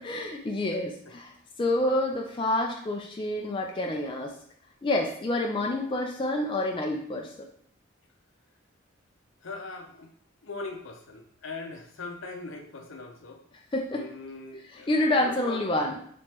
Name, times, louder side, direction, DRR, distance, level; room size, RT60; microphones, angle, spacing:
voice 1, 0.0-1.3 1.6-4.3 4.8-7.3 13.7-14.1 14.7-16.0, left 1 dB, 25° left, 1 dB, 0.3 m, -28 dB
voice 2, 9.4-10.1 10.4-13.4 13.9-15.6, left 3 dB, 70° left, 4 dB, 0.7 m, -40 dB
5.2 x 3.0 x 2.9 m, 0.64 s
head